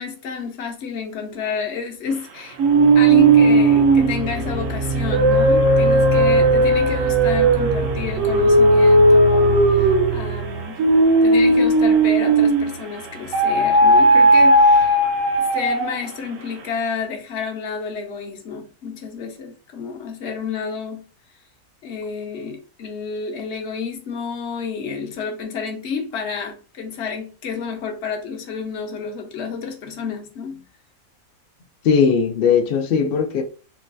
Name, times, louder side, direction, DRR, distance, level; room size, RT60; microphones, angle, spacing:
voice 1, 0.0-10.9 11.2-15.0 15.4-21.0 21.8-30.6, left 5 dB, 60° left, 0.8 m, -30 dB
sound 1, 2.6-12.8 13.3-16.1, right 2 dB, 65° right, 0.9 m, -16 dB
voice 2, 31.8-33.4, left 6 dB, 90° left, 0.5 m, -18 dB
3.8 x 2.2 x 2.5 m
omnidirectional pair, 1.6 m